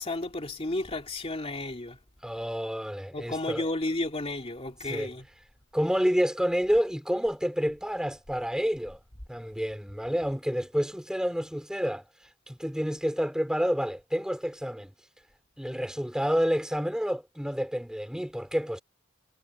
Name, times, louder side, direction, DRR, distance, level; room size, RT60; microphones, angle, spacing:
voice 1, 0.0-2.0 3.1-5.3, left 2 dB, 30° left, 2.5 m, -32 dB
voice 2, 2.2-3.6 4.9-5.1 5.7-9.0 9.3-12.0 12.5-14.9 15.6-18.8, equal, 5° right, 2.8 m, -29 dB
head